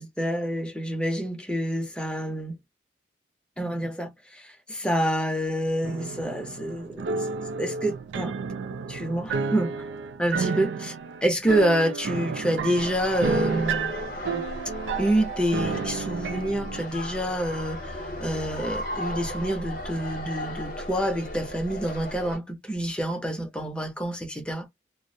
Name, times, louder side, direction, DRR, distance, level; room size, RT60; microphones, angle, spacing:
voice 1, 0.0-2.5 3.6-7.3 7.6-8.4 8.9-9.7 10.2-11.0 11.2-13.9 14.3-14.4 15.0-24.7, right 1 dB, 5° left, 0.5 m, -27 dB
sound 1, 5.8-16.8, right 5 dB, 85° right, 0.3 m, -31 dB
sound 2, 12.8-22.4, left 1 dB, 45° left, 0.8 m, -35 dB
2.4 x 2.0 x 2.6 m
head